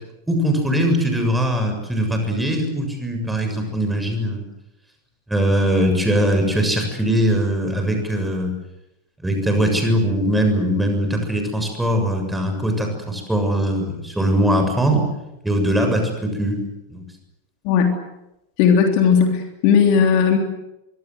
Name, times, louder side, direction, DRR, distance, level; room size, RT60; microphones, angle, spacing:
voice 1, 0.3-4.4 5.3-8.5 9.2-15.1 15.4-16.6 16.9-17.0, equal, 5° right, 4 dB, 7.2 m, -21 dB
voice 2, 18.6-20.4, left 7 dB, 45° left, 4 dB, 3.4 m, -16 dB
25.5 x 23.5 x 8.1 m, 0.92 s
figure-of-eight pair, 90°, 0 cm